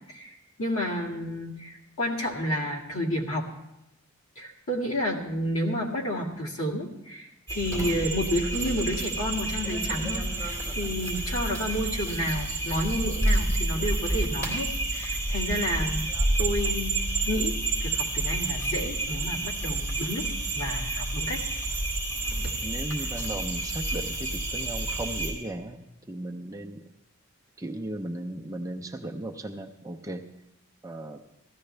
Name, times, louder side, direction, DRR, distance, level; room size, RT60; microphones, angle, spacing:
voice 1, 0.1-3.5 4.4-16.1 16.4-20.3 20.5-21.4 22.4-22.6, equal, 70° left, -1 dB, 2.1 m, -31 dB
Koh mak field night, 7.5-25.3, right 2 dB, 15° left, 3.6 m, -29 dB
voice 2, 22.1-26.8 27.6-30.3 30.8-31.2, right 1 dB, 15° right, 3 dB, 0.5 m, -36 dB
16.5 x 14.0 x 3.3 m, 0.90 s
head